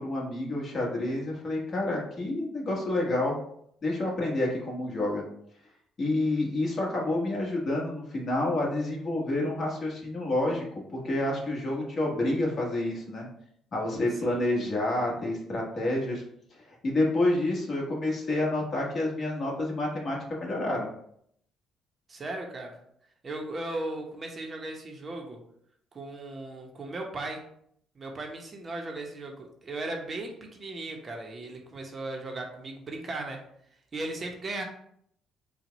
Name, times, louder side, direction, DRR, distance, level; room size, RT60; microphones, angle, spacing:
voice 1, 0.0-3.4 3.8-5.2 6.0-10.6 10.9-13.3 13.7-16.2 16.7-20.9, left 1 dB, 45° left, -2 dB, 1.5 m, -28 dB
voice 2, 22.1-22.8 23.2-25.4 25.9-27.4 28.0-33.4 33.9-34.6, right 2 dB, 35° right, 2 dB, 0.8 m, -37 dB
4.5 x 2.3 x 4.0 m, 0.69 s
cardioid pair, 100°, 0 cm